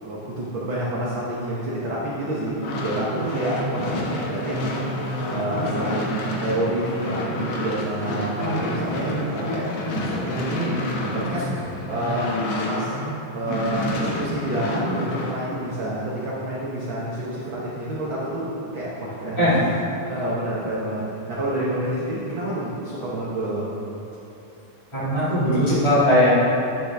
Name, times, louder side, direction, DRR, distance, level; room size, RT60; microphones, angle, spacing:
voice 1, 0.0-4.8 5.3-11.6 11.9-12.4 12.7-12.9 13.3-19.6 20.1-23.7, right 1 dB, 70° right, -6 dB, 1.1 m, -28 dB
sound 1, 2.5-13.1 13.4-15.4, left 1 dB, 65° left, 1.6 m, -28 dB
voice 2, 24.9-26.3, equal, 15° left, -12 dB, 1.1 m, -19 dB
9.1 x 8.1 x 3.5 m, 3.0 s
omnidirectional pair, 3.7 m